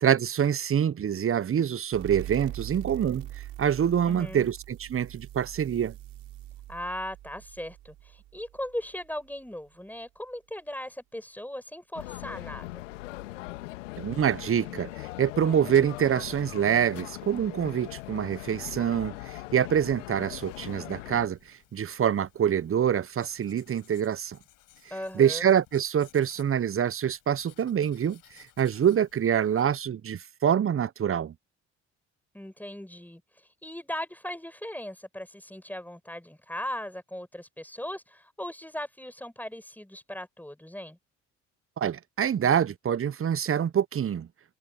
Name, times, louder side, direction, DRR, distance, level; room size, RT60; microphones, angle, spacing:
voice 1, 0.0-5.9 14.0-24.4 25.1-31.3 41.8-44.3, right 9 dB, 35° right, 1.2 m, -26 dB
sound 1, 1.9-9.2, right 14 dB, 60° right, 6.3 m, -42 dB
voice 2, 4.1-4.5 6.7-12.8 24.9-25.5 32.3-33.2 33.6-41.0, left 1 dB, 5° left, 7.6 m, -38 dB
sound 2, 11.9-21.3, left 19 dB, 80° left, 2.0 m, -40 dB
Writing, 21.2-29.6, left 14 dB, 60° left, 6.3 m, -59 dB
hypercardioid pair, 55°, 37 cm